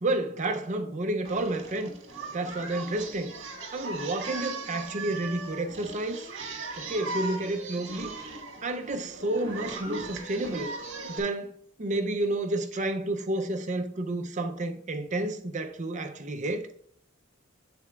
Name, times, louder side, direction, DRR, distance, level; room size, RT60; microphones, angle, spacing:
voice 1, 0.0-2.0 2.3-3.4 3.7-6.3 6.8-8.3 8.6-10.7 11.1-11.5 11.8-16.8, right 2 dB, 35° right, 0.6 m, -30 dB
Singing, 1.3-11.2, right 3 dB, 65° right, 1.5 m, -39 dB
7.7 x 7.4 x 2.4 m
head